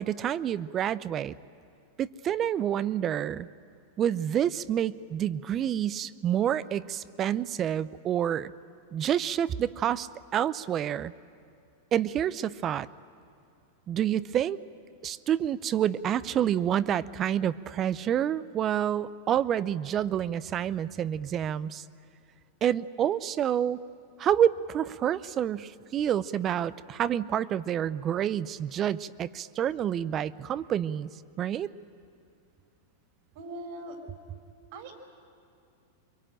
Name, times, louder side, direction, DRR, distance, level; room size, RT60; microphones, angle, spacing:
voice 1, 0.0-1.3 2.0-3.5 4.0-8.5 8.9-10.1 10.3-11.1 11.9-12.9 13.9-14.6 15.0-21.8 22.6-23.8 24.2-31.1 31.4-31.7, right 10 dB, 30° right, 18 dB, 0.6 m, -28 dB
voice 2, 33.3-34.0 34.7-34.9, right 2 dB, 60° right, 4 dB, 4.9 m, -40 dB
23.0 x 23.0 x 9.0 m, 2.5 s
hypercardioid pair, 125°, 0 cm